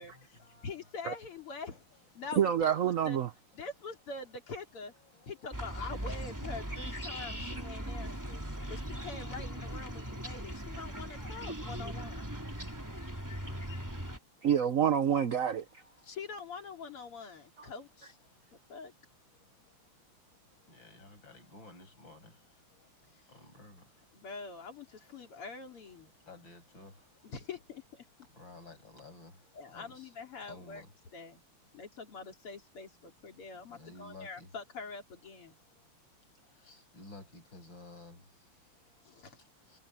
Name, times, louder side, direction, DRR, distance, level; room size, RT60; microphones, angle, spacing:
voice 1, 0.0-1.1 1.6-2.3 3.6-3.7 4.2-6.2 6.8-11.1 12.8-13.7 15.8-16.1 16.6-16.8 17.6-18.4 19.3-27.5 28.2-31.3 32.1-32.2 33.3-34.7 35.1-35.2 35.5-35.9 36.5-39.8, left 2 dB, 60° left, 8.4 m, -57 dB
voice 2, 0.6-1.8 2.2-2.4 3.1-3.2 3.6-4.9 5.3-8.4 8.7-12.2 16.1-17.9 18.7-18.9 24.2-24.9 25.1-26.1 27.3-27.8 29.6-30.8 31.1-31.4 31.7-35.5, left 4 dB, 85° left, 4.0 m, -44 dB
voice 3, 2.3-3.3 7.5-7.6 14.4-15.6 17.6-17.7, right 9 dB, 85° right, 0.7 m, -27 dB
sound 1, 5.5-14.2, equal, 10° right, 3.1 m, -39 dB
omnidirectional pair, 2.4 m